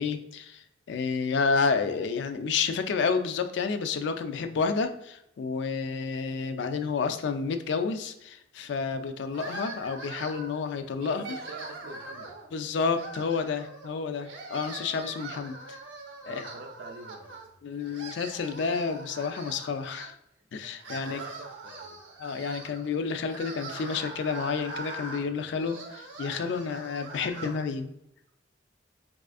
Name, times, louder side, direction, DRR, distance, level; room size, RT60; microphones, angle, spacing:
voice 1, 0.0-11.2 12.5-15.8 16.3-16.4 17.6-20.2 20.5-21.2 22.2-27.9, left 5 dB, 60° left, 8 dB, 0.3 m, -30 dB
sound 1, 9.3-10.6 11.0-12.5 12.9-13.9 14.2-17.5 17.8-20.1 20.6-27.6, right 2 dB, 80° right, 0.7 m, -42 dB
voice 2, 10.9-12.3 16.2-17.4 20.8-22.0, right 4 dB, 55° right, 3 dB, 0.4 m, -45 dB
4.2 x 2.4 x 2.3 m, 0.80 s
head